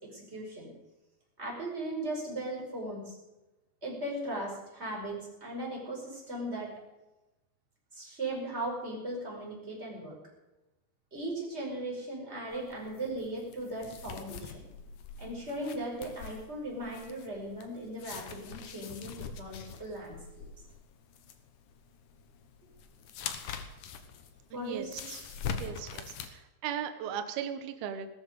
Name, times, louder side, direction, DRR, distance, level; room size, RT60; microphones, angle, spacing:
voice 1, 0.0-0.7 1.4-3.2 3.8-6.7 7.9-10.2 11.1-14.7 15.2-20.5 24.5-25.1, right 1 dB, 15° right, -3 dB, 5.3 m, -38 dB
sound 1, 12.5-26.3, left 6 dB, 75° left, 1.8 m, -44 dB
voice 2, 24.5-28.1, right 8 dB, 70° right, 7 dB, 2.5 m, -38 dB
17.0 x 13.5 x 5.3 m, 1.0 s
omnidirectional pair, 5.4 m